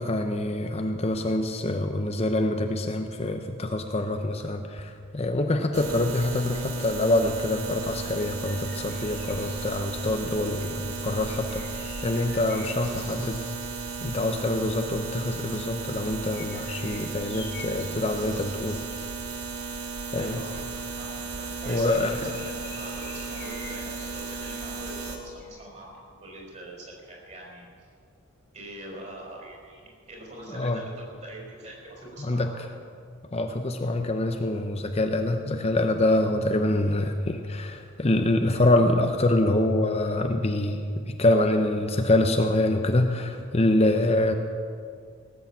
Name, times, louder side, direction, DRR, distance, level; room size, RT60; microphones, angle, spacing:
voice 1, 0.0-10.7 11.0-13.5 14.0-18.8 20.1-20.4 21.7-22.2 30.5-30.8 32.2-32.5 33.3-44.3, left 1 dB, 30° left, 5 dB, 0.7 m, -25 dB
sound 1, 5.7-25.2, right 4 dB, 75° right, 1.6 m, -35 dB
sound 2, 8.2-10.4 11.2-14.0 16.2-19.2 21.4-25.9, left 4 dB, 55° left, 2.7 m, -48 dB
voice 2, 10.6-10.9 20.2-21.1 21.6-25.9 26.2-27.7 28.5-30.9 31.2-32.7, right 1 dB, 35° right, -2 dB, 4.3 m, -43 dB
18.0 x 8.4 x 7.2 m, 2.2 s
head